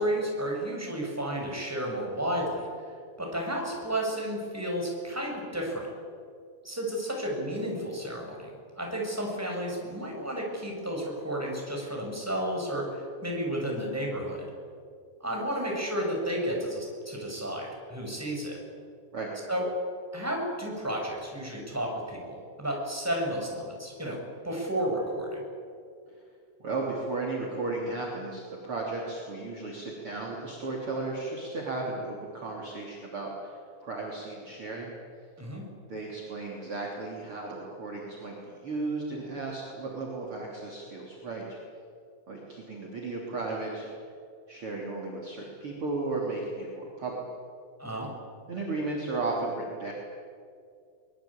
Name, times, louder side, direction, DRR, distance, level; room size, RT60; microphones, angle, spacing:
voice 1, 0.0-2.7 3.2-5.9 6.6-14.5 15.2-18.6 19.5-19.6 20.1-25.4 35.4-35.6 47.8-48.1, right 1 dB, 5° right, -1 dB, 6.2 m, -32 dB
voice 2, 26.6-34.9 35.9-41.6 42.3-43.9 44.5-47.2 48.5-49.9, right 3 dB, 35° right, -2 dB, 3.7 m, -35 dB
23.5 x 22.0 x 8.8 m, 2.3 s
omnidirectional pair, 4.5 m